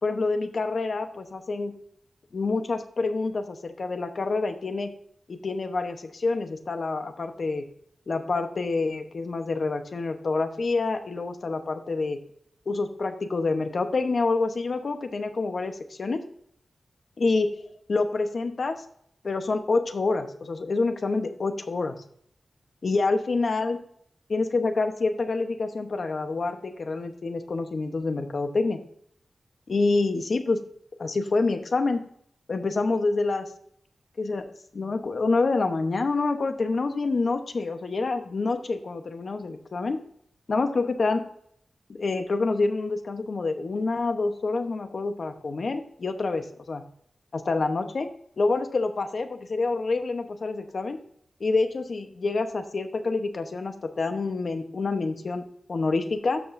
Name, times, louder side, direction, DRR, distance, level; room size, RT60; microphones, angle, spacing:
voice 1, 0.0-1.7 2.3-4.9 5.3-7.6 8.1-12.2 12.7-16.2 17.2-17.5 17.9-18.8 19.2-22.0 22.8-23.8 24.3-28.8 29.7-30.6 31.0-32.0 32.5-33.5 34.2-40.0 40.5-41.2 41.9-46.8 47.3-48.1 48.4-51.0 51.4-56.4, left 3 dB, 60° left, 7 dB, 0.9 m, -27 dB
13.0 x 6.2 x 2.6 m, 0.67 s
wide cardioid pair, 110°, 0 cm